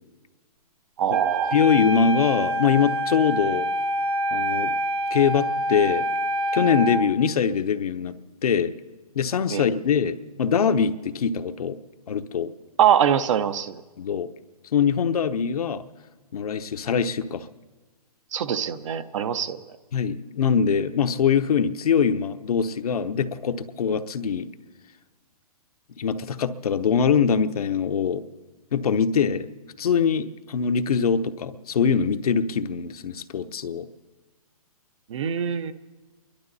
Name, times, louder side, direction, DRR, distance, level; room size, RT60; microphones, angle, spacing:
voice 1, 1.0-1.6 9.5-9.7 12.8-13.8 18.3-19.6 35.1-35.7, right 9 dB, 55° right, 12 dB, 0.8 m, -23 dB
Wind instrument woodwind instrument, 1.1-7.1, equal, 35° right, 1.1 m, -26 dB
voice 2, 1.5-3.7 4.3-4.7 5.1-6.1 6.5-8.7 9.1-11.8 12.1-12.5 14.0-14.3 14.7-15.8 16.3-17.5 19.9-24.5 26.0-28.2 28.7-29.5 29.8-33.9, left 6 dB, 75° left, 9 dB, 0.9 m, -23 dB
29.5 x 12.0 x 4.1 m, 1.3 s
hypercardioid pair, 150°, 19 cm